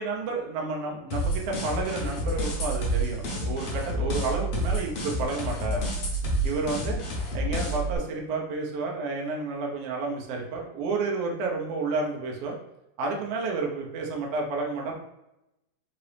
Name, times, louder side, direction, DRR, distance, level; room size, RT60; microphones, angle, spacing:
voice 1, 0.0-5.8 6.4-7.0 7.3-12.5 13.0-14.9, right 3 dB, 80° right, -1 dB, 1.4 m, -30 dB
sound 1, 1.1-8.0, equal, 60° left, 1.6 m, -29 dB
5.0 x 2.9 x 3.3 m, 0.90 s
omnidirectional pair, 3.9 m